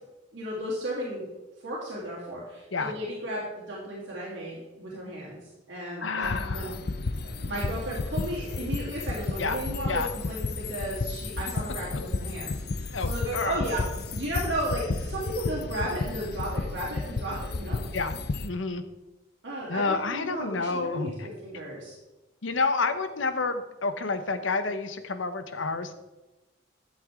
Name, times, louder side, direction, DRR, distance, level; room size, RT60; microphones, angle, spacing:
voice 1, 0.3-1.3 1.6-3.4 3.7-6.7 7.2-13.8 14.1-17.8 19.4-21.9, right 1 dB, 70° right, -6 dB, 2.9 m, -34 dB
voice 2, 6.0-6.8 9.4-9.6 9.9-10.1 12.9-13.6 17.9-18.1 18.4-18.8 19.7-21.3 22.4-25.9, left 4 dB, 85° left, 9 dB, 1.0 m, -29 dB
sound 1, 6.2-18.5, left 3 dB, 55° left, 0.6 m, -32 dB
12.5 x 7.8 x 3.7 m, 1.1 s
head